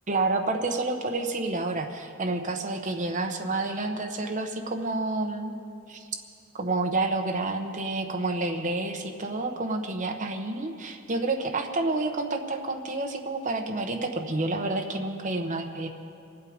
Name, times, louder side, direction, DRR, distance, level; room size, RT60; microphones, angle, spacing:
voice 1, 0.1-5.6 5.9-6.0 6.5-15.9, right 2 dB, 40° right, 4 dB, 1.0 m, -29 dB
24.5 x 8.2 x 5.1 m, 2.4 s
head